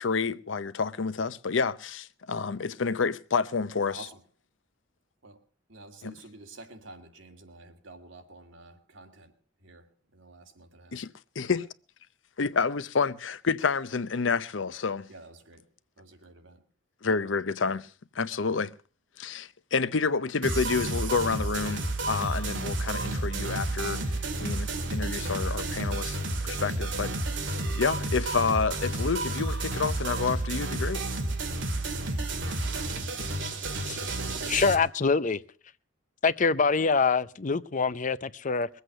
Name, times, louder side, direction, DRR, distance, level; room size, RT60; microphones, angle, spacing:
voice 1, 0.0-4.1 6.0-6.1 10.9-11.7 12.4-15.1 17.0-17.9 18.1-18.7 19.2-26.2 26.4-27.1 27.4-31.0, left 5 dB, 85° left, 0.7 m, -29 dB
voice 2, 5.7-9.3 9.6-11.0 15.1-15.7 16.0-16.6 23.4-23.6, right 2 dB, 85° right, 2.3 m, -49 dB
sound 1, 20.4-34.7, right 2 dB, 70° right, 2.3 m, -31 dB
voice 3, 34.5-35.4 36.2-38.7, left 4 dB, 40° left, 0.6 m, -25 dB
21.5 x 8.2 x 6.5 m
head